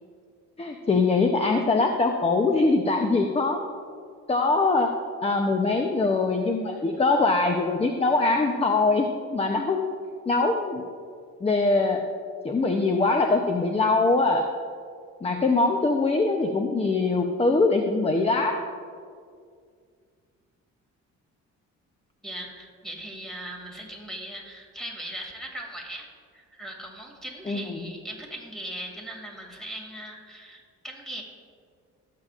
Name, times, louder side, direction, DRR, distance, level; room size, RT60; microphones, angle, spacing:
voice 1, 0.6-3.6 4.3-4.9 5.2-9.1 9.3-9.9 10.3-10.8 11.4-12.1 12.4-14.5 15.2-18.6 27.5-27.8, left 3 dB, 20° left, 4 dB, 0.7 m, -23 dB
voice 2, 22.2-26.1 26.3-31.2, right 1 dB, ahead, -1 dB, 2.4 m, -39 dB
17.5 x 7.5 x 2.5 m, 2.1 s
cardioid pair, 90°, 30 cm